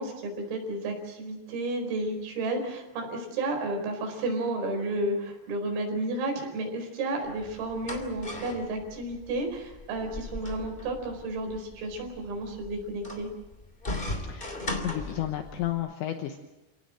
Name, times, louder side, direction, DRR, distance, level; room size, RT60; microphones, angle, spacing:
voice 1, 0.0-13.3, right 2 dB, 80° right, 3 dB, 7.2 m, -32 dB
sound 1, 7.2-15.7, left 2 dB, 20° left, 1.3 m, -38 dB
voice 2, 14.8-16.4, left 13 dB, 75° left, 6 dB, 3.1 m, -32 dB
28.5 x 18.0 x 7.7 m, 1.0 s
omnidirectional pair, 5.8 m